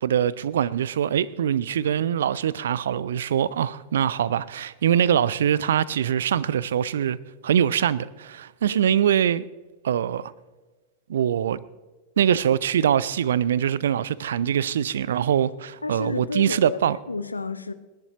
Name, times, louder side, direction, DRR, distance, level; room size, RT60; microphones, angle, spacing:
voice 1, 0.0-7.2 7.4-9.4 9.8-10.3 11.1-11.6 12.2-17.0, right 9 dB, 60° right, 0.5 m, -23 dB
voice 2, 15.8-16.8 17.1-17.7, left 3 dB, 80° left, 0.8 m, -31 dB
30.0 x 11.0 x 3.0 m
figure-of-eight pair, 90°, 0 cm